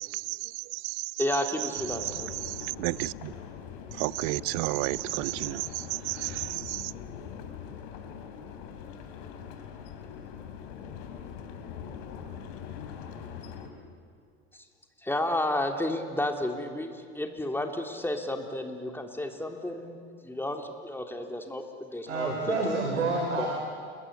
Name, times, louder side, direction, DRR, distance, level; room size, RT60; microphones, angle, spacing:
voice 1, 0.0-1.2 1.6-3.3 3.9-6.9, right 23 dB, 55° right, 21 dB, 0.7 m, -32 dB
voice 2, 1.2-2.3 14.5-14.6 15.0-20.0 20.2-22.8 23.4-23.5, left 1 dB, 5° left, 4 dB, 3.4 m, -32 dB
sound 1, 1.7-13.7, left 7 dB, 60° left, 3.6 m, -42 dB
voice 3, 22.1-23.5, right 3 dB, 85° right, 1 dB, 4.0 m, -28 dB
30.0 x 21.5 x 8.6 m, 2.2 s
hypercardioid pair, 85°, 35 cm